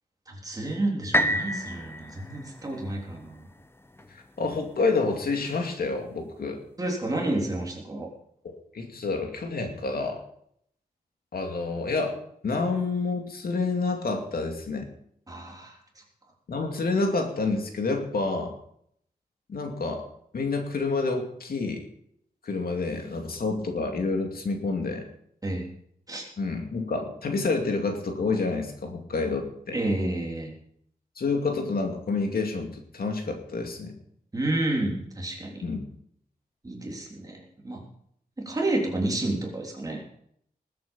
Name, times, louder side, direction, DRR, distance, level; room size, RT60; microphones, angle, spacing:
voice 1, 0.3-3.4 6.8-8.1 15.3-15.8 25.4-25.7 26.1-26.3 29.7-30.5 34.3-35.6 36.6-37.4 37.6-37.8 38.4-40.0, right 2 dB, 25° right, -1 dB, 3.5 m, -30 dB
sound 1, 1.1-5.1 5.7-5.8, equal, 15° left, 0.7 m, -30 dB
voice 2, 4.4-6.6 8.4-10.2 11.3-12.2 12.4-14.9 16.5-18.5 19.5-20.0 20.3-21.8 22.4-25.0 26.4-29.8 31.2-33.9 35.6-35.8, left 3 dB, 75° left, 3 dB, 2.5 m, -28 dB
20.0 x 8.7 x 5.5 m, 0.69 s
wide cardioid pair, 160°, 16 cm